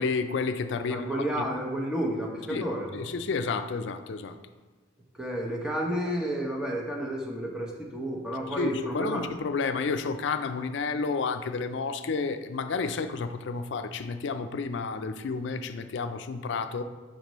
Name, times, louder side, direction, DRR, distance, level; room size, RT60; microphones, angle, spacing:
voice 1, 0.0-1.2 2.5-2.6 2.9-4.4 8.5-16.8, left 4 dB, 65° left, 9 dB, 0.4 m, -31 dB
voice 2, 0.8-3.1 5.1-9.2, right 1 dB, 5° right, -1 dB, 0.8 m, -31 dB
6.7 x 5.1 x 3.0 m, 1.3 s
head